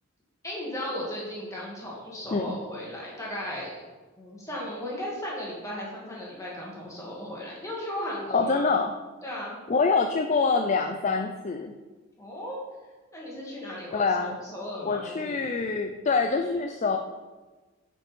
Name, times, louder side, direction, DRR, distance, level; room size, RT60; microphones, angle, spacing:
voice 1, 0.4-3.8 4.2-8.7 9.2-9.6 12.2-12.6 13.1-15.5, left 1 dB, 15° left, -4 dB, 2.1 m, -36 dB
voice 2, 8.3-8.9 9.7-11.7 13.9-14.4 14.8-17.0, left 4 dB, 35° left, 5 dB, 0.4 m, -25 dB
9.2 x 5.3 x 4.4 m, 1.3 s
head